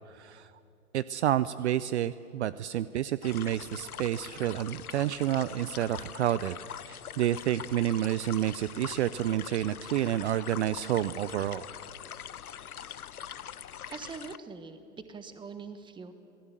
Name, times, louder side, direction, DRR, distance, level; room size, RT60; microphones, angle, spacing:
voice 1, 0.1-0.5 0.9-6.6 6.9-11.7, right 12 dB, 55° right, 17 dB, 0.6 m, -29 dB
sound 1, 3.2-14.4, left 9 dB, 90° left, 0.6 m, -43 dB
voice 2, 13.9-14.8 15.1-16.1, right 5 dB, 10° right, 10 dB, 1.3 m, -43 dB
26.5 x 18.0 x 7.6 m, 2.6 s
hypercardioid pair, 120°, 43 cm